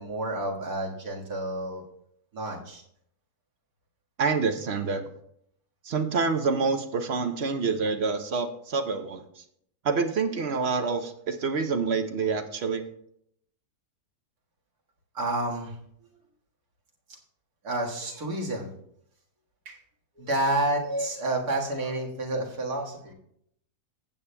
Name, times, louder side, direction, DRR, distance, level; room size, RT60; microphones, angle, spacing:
voice 1, 0.0-1.8 2.3-2.8 15.1-15.8 17.6-18.7 19.7-19.8 20.2-23.1, right 1 dB, 85° right, -1 dB, 2.2 m, -29 dB
voice 2, 4.2-5.0 5.8-9.4 9.8-12.8, right 4 dB, 55° right, 7 dB, 0.9 m, -27 dB
15.5 x 8.4 x 2.2 m, 0.70 s
omnidirectional pair, 1.6 m